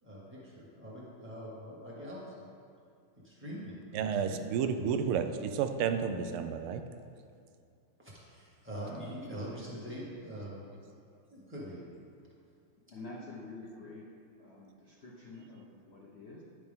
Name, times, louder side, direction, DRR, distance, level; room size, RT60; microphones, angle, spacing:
voice 1, 0.0-2.4 3.2-4.1 8.0-10.6 11.3-11.8 12.2-12.3, equal, 5° right, -7 dB, 1.7 m, -43 dB
voice 2, 3.9-6.8, right 7 dB, 80° right, 8 dB, 1.5 m, -31 dB
voice 3, 12.9-14.1 14.4-16.4, left 2 dB, 55° left, -4 dB, 0.7 m, -48 dB
10.5 x 6.6 x 3.6 m, 2.4 s
omnidirectional pair, 2.4 m